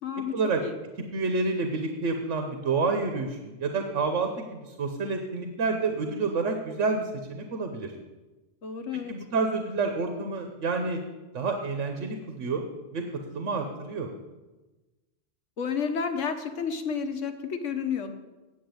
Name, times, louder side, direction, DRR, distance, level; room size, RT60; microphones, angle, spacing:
voice 1, 0.0-0.3 0.6-0.8 8.6-9.1 15.6-18.1, left 6 dB, 90° left, 6 dB, 1.4 m, -31 dB
voice 2, 1.1-7.9 8.9-11.0 11.3-12.6 12.9-13.0 13.3-14.1, right 4 dB, 85° right, 5 dB, 1.3 m, -29 dB
8.6 x 7.9 x 7.9 m, 1.2 s
omnidirectional pair, 1.2 m